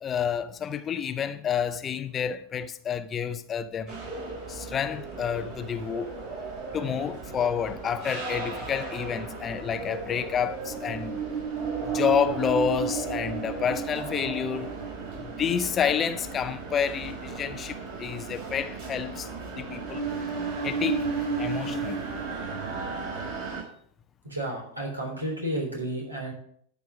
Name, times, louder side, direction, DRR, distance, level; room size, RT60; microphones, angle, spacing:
voice 1, 0.0-4.0 4.5-6.2 6.7-11.2 11.9-14.8 15.2-19.3 19.6-20.1 20.6-21.1 21.4-22.0, left 7 dB, 25° left, 0.6 m, -29 dB
sound 1, 3.9-23.6, right 5 dB, 45° right, 4.4 m, -34 dB
voice 2, 24.2-26.3, right 1 dB, 80° right, 3.5 m, -32 dB
12.0 x 4.7 x 7.3 m
figure-of-eight pair, 90°, 0 cm